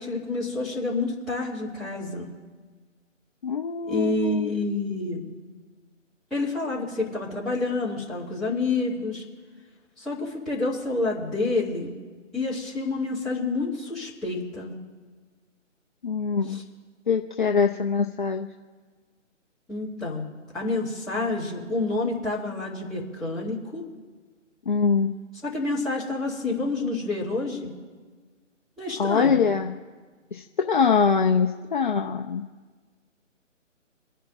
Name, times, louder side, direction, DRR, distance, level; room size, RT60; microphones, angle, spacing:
voice 1, 0.0-2.3 3.9-5.3 6.3-9.2 10.0-11.9 12.3-14.7 16.5-16.6 19.7-20.3 20.5-23.8 25.4-27.7 28.8-29.4, left 3 dB, ahead, -12 dB, 2.5 m, -28 dB
voice 2, 3.4-4.5 16.0-16.6 17.1-18.5 24.7-25.2 29.0-29.8 30.3-32.5, left 5 dB, 40° left, 2 dB, 0.7 m, -23 dB
27.0 x 10.0 x 2.7 m, 1.5 s
figure-of-eight pair, 150°, 38 cm